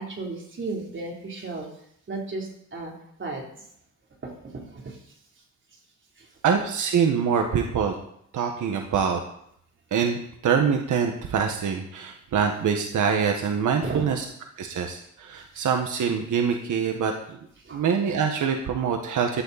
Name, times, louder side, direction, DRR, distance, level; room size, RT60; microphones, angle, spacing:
voice 1, 0.0-1.7 2.1-2.9 3.2-3.7 4.2-5.2 6.2-6.3 13.8-14.1 15.5-15.6 17.6-17.9, right 3 dB, 40° right, 0 dB, 3.7 m, -35 dB
voice 2, 6.4-7.9 8.3-9.2 9.9-14.2 14.6-17.4 17.7-19.4, right 6 dB, 85° right, 3 dB, 1.6 m, -24 dB
15.5 x 11.5 x 4.2 m, 0.69 s
cardioid pair, 110°, 30 cm